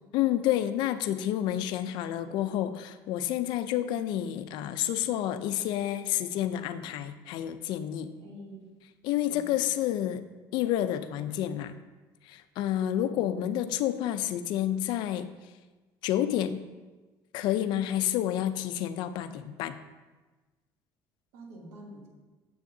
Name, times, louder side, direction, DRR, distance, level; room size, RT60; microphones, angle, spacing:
voice 1, 0.1-8.1 9.0-10.3 10.5-11.8 12.2-15.3 16.0-16.6 17.3-19.8, left 12 dB, 65° left, 11 dB, 0.5 m, -29 dB
voice 2, 8.2-8.6 9.2-9.5 12.9-13.2 21.3-22.1, equal, 90° right, -3 dB, 2.7 m, -46 dB
9.3 x 7.3 x 2.7 m, 1.2 s
cardioid pair, 150°, 8 cm